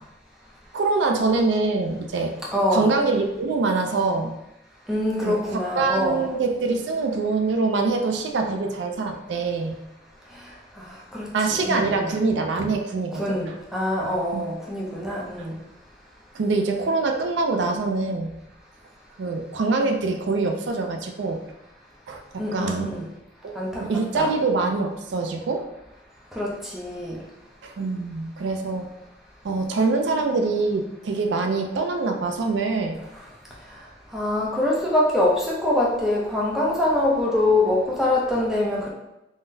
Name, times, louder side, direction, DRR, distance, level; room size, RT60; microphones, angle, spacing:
voice 1, 0.7-2.3 2.7-4.3 5.3-9.8 11.3-13.2 14.3-14.4 16.3-18.3 19.2-21.4 22.1-22.2 22.5-22.9 23.4-25.6 27.6-28.9 29.4-33.0, right 3 dB, 90° right, 4 dB, 0.4 m, -24 dB
voice 2, 2.5-2.9 4.9-6.2 10.3-12.1 13.1-15.6 22.4-23.1 23.5-23.8 24.1-24.3 26.3-27.2 33.1-33.3 33.7-33.9 34.1-38.9, left 1 dB, ahead, -5 dB, 0.5 m, -24 dB
3.6 x 2.2 x 2.6 m, 0.94 s
head